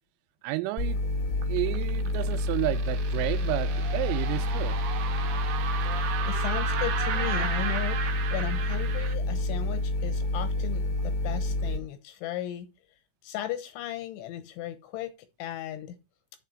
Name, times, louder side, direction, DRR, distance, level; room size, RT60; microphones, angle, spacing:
voice 1, 0.4-1.0 1.5-4.8, right 18 dB, 90° right, 3.3 m, -31 dB
sound 1, 0.8-11.8, left 2 dB, 20° left, 1.2 m, -28 dB
sound 2, 1.4-9.1, right 8 dB, 70° right, 3.0 m, -35 dB
voice 2, 5.9-12.7 13.2-15.1 15.4-16.0, left 12 dB, 80° left, 2.9 m, -36 dB
7.4 x 5.0 x 6.7 m
omnidirectional pair, 5.9 m